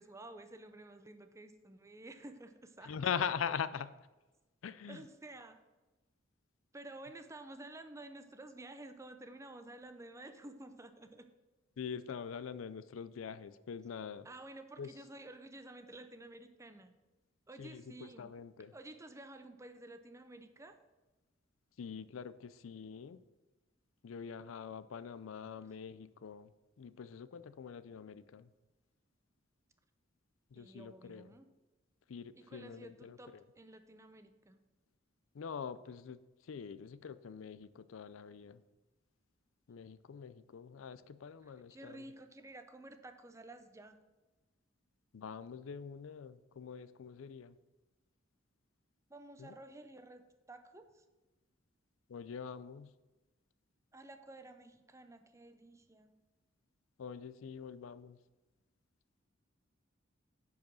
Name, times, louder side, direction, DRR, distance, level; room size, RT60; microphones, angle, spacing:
voice 1, 0.0-3.1 4.9-5.6 6.7-11.3 14.2-16.9 17.5-18.4 18.7-20.8 30.5-31.5 32.4-34.6 41.4-44.0 49.1-51.0 53.9-56.1, right 2 dB, 15° right, 9 dB, 0.6 m, -52 dB
voice 2, 2.8-3.9 4.6-5.0 11.8-14.3 14.8-14.9 17.6-18.7 21.8-23.2 24.0-26.5 26.8-28.5 30.5-31.3 32.1-33.2 35.3-38.6 39.7-42.1 45.1-47.6 49.4-49.5 52.1-52.9 57.0-58.2, left 7 dB, 85° left, 15 dB, 0.4 m, -43 dB
10.5 x 4.8 x 6.2 m, 1.1 s
head